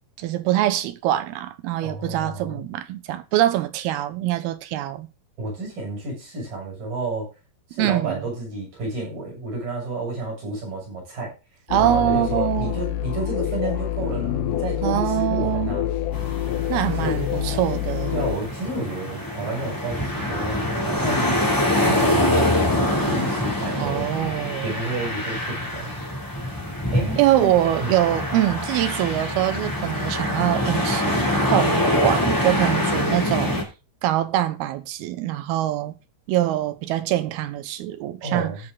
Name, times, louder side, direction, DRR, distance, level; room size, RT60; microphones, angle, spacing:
voice 1, 0.2-5.1 7.8-8.2 11.7-12.8 14.8-15.8 16.7-18.2 23.8-24.8 27.2-33.6 34.0-35.9 36.3-38.5, right 13 dB, 80° right, 2.7 m, -24 dB
voice 2, 1.8-2.6 5.4-7.3 7.7-11.3 11.8-15.9 16.9-17.5 18.1-21.4 21.8-24.1 24.6-25.9 26.9-28.0 38.2-38.6, right 2 dB, 55° right, 8.6 m, -30 dB
sound 1, 11.7-18.4, left 12 dB, 70° left, 2.1 m, -27 dB
sound 2, 16.1-33.6, left 1 dB, 5° left, 1.6 m, -25 dB
17.5 x 6.3 x 3.8 m
omnidirectional pair, 4.7 m